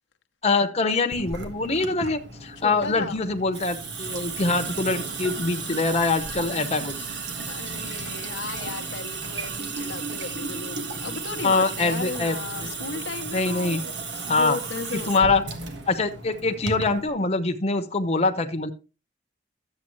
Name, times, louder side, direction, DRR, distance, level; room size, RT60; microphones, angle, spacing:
voice 1, 0.4-7.0 11.4-12.7 13.3-13.8 14.3-14.6 15.1-15.4 15.9-18.7, left 3 dB, 35° left, 0.9 m, -24 dB
Water tap faucet / Sink (filling or washing) / Drip, 1.1-17.1, right 4 dB, 70° right, 1.5 m, -34 dB
voice 2, 2.6-3.2 7.5-15.5, left 4 dB, 80° left, 0.8 m, -35 dB
12.0 x 8.1 x 3.1 m
head